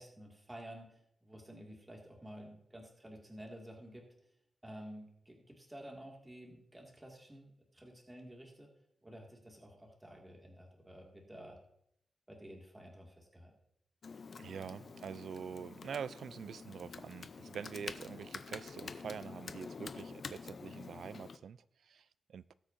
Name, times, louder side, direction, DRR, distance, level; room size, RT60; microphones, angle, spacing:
voice 1, 0.0-4.0 4.6-8.7 9.0-11.6 12.3-13.5, equal, 10° right, 2.1 m, -51 dB
Computer keyboard, 14.0-21.4, left 5 dB, 50° left, 0.5 m, -48 dB
voice 2, 14.4-22.5, right 7 dB, 85° right, 0.3 m, -45 dB
19.0 x 8.2 x 2.6 m
wide cardioid pair, 160°, 0 cm